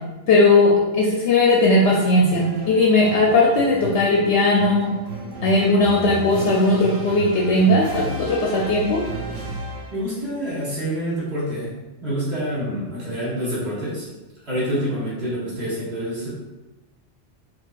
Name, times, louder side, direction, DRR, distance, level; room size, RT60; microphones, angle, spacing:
voice 1, 0.3-4.9 5.4-9.0, left 2 dB, 70° left, -3 dB, 0.8 m, -18 dB
sound 1, 2.3-10.2, right 2 dB, 80° right, 1.1 m, -33 dB
voice 2, 9.9-11.7 12.0-14.1 14.4-16.3, equal, 60° right, -8 dB, 1.7 m, -27 dB
4.6 x 2.4 x 2.4 m, 1.1 s
omnidirectional pair, 1.3 m